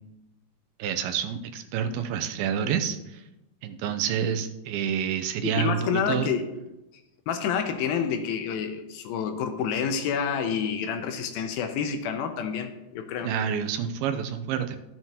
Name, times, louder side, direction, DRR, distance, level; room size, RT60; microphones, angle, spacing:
voice 1, 0.8-3.2 3.6-6.3 13.2-14.8, right 8 dB, 90° right, 8 dB, 2.6 m, -28 dB
voice 2, 5.4-6.4 7.3-13.3, left 7 dB, 80° left, 6 dB, 2.6 m, -28 dB
13.5 x 7.5 x 2.8 m, 0.96 s
omnidirectional pair, 4.3 m